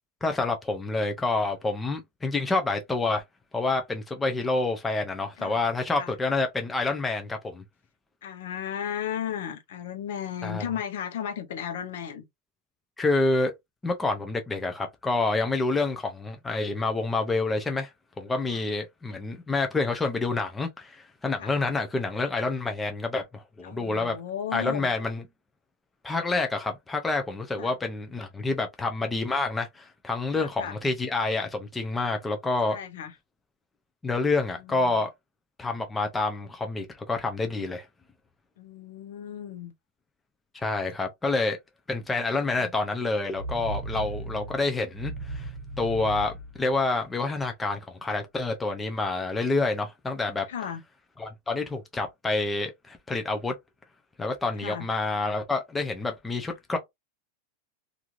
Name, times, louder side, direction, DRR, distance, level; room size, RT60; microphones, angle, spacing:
voice 1, 0.2-3.2 3.5-7.6 10.4-10.7 13.0-13.5 13.8-17.9 18.2-24.2 24.5-25.2 26.0-32.8 34.0-35.1 35.6-37.9 40.5-41.6 41.9-45.5 45.8-50.5 51.2-53.6 54.2-56.8, left 3 dB, 5° left, 0.3 m, -28 dB
voice 2, 8.2-12.3 18.5-18.6 21.4-21.5 23.6-24.9 27.6-27.8 30.3-30.8 32.7-33.1 34.6-35.1 38.6-39.7 42.3-42.7 43.9-44.5 50.5-50.8 54.6-54.9, left 9 dB, 70° left, 0.6 m, -35 dB
sound 1, 43.3-47.4, right 2 dB, 35° right, 0.8 m, -37 dB
3.0 x 2.4 x 2.3 m
supercardioid pair, 175°, 0 cm